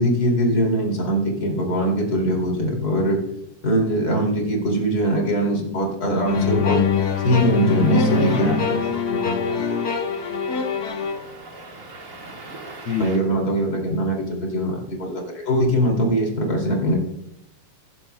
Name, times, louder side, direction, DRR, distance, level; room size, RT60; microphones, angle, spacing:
voice 1, 0.0-3.2 3.6-6.8 7.2-8.6 13.0-17.0, equal, 30° left, 1 dB, 2.8 m, -21 dB
sound 1, 6.3-11.2, left 5 dB, 80° left, 0.8 m, -23 dB
sound 2, 6.9-13.2, right 2 dB, 35° right, 1.4 m, -42 dB
voice 2, 8.1-9.7 12.8-13.3, left 4 dB, 55° left, -2 dB, 1.7 m, -28 dB
22.5 x 11.0 x 2.2 m, 0.82 s
omnidirectional pair, 3.5 m